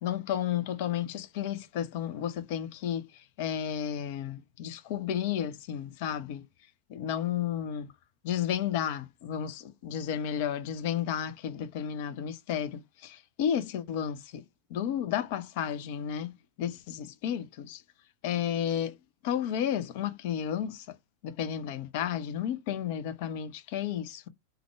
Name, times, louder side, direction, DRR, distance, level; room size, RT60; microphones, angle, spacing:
voice 1, 0.0-3.1 3.4-6.4 6.9-7.9 8.2-14.4 14.7-17.8 18.2-19.0 19.2-21.0 21.2-24.3, left 9 dB, 50° left, 0.5 m, -32 dB
3.5 x 2.2 x 3.4 m
figure-of-eight pair, 90°, 0 cm